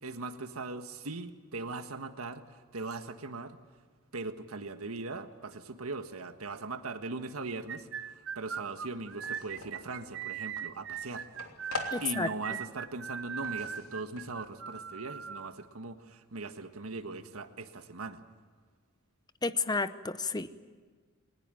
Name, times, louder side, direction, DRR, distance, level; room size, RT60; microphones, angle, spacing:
voice 1, 0.0-3.6 4.1-11.3 12.0-18.2, right 3 dB, 90° right, 8 dB, 1.5 m, -40 dB
sound 1, 7.5-15.5, right 8 dB, 60° right, 0.9 m, -39 dB
sound 2, 9.0-9.9 10.4-12.5 12.8-14.5, left 3 dB, 85° left, 3.0 m, -43 dB
voice 2, 11.9-12.3 19.4-20.6, left 3 dB, 20° left, 13 dB, 0.7 m, -31 dB
22.0 x 19.5 x 9.2 m, 1.5 s
head